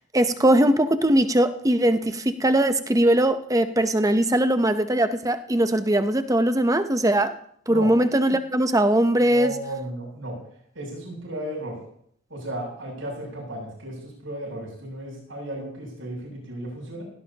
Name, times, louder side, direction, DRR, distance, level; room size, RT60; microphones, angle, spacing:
voice 1, 0.1-7.3 7.7-9.5, right 1 dB, 15° right, 9 dB, 0.8 m, -20 dB
voice 2, 9.3-10.4 10.7-11.8 12.3-17.0, right 1 dB, 80° right, -1 dB, 7.7 m, -34 dB
18.0 x 17.0 x 2.9 m, 0.66 s
head